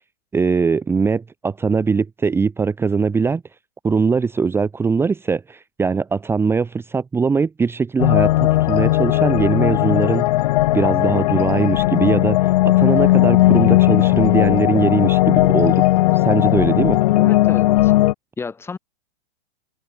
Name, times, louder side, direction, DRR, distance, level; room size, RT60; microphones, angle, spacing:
voice 1, 0.3-3.4 3.8-10.3 10.7-12.5 12.8-15.8 16.1-17.0, right 5 dB, 5° right, 1.4 m, -21 dB
sound 1, 8.0-18.1, left 17 dB, 40° left, 0.5 m, -16 dB
voice 2, 17.1-17.9 18.4-18.8, left 4 dB, 10° left, 1.7 m, -31 dB
supercardioid pair, 160°, 31 cm